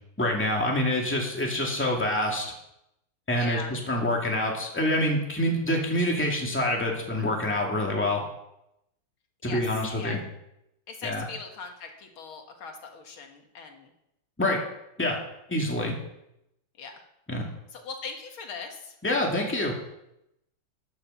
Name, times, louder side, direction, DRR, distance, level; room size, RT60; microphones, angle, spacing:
voice 1, 0.2-2.5 3.3-8.2 9.4-10.2 11.0-11.3 14.4-14.6 15.0-15.2 15.5-15.9 17.3-17.5 19.0-19.7, left 1 dB, 5° left, -1 dB, 2.2 m, -26 dB
voice 2, 3.3-3.7 9.4-9.7 10.0-10.2 10.9-13.9 16.8-17.0 17.7-19.0, left 5 dB, 75° left, 3 dB, 2.3 m, -40 dB
13.5 x 9.1 x 5.6 m, 0.83 s
omnidirectional pair, 2.3 m